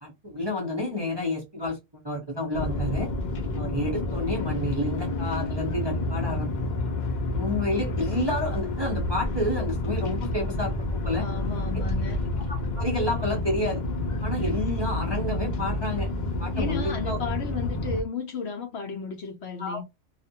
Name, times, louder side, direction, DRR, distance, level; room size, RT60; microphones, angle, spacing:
voice 1, 0.0-3.1 3.6-6.5 7.3-11.3 12.8-13.8 14.2-16.1 16.4-17.2 19.6-19.8, left 1 dB, 25° right, 0.6 m, -30 dB
sound 1, 2.5-18.0, left 1 dB, 85° left, 0.4 m, -29 dB
voice 2, 11.2-12.2 16.5-19.8, left 5 dB, 65° left, 0.8 m, -34 dB
2.4 x 2.1 x 2.7 m
omnidirectional pair, 1.4 m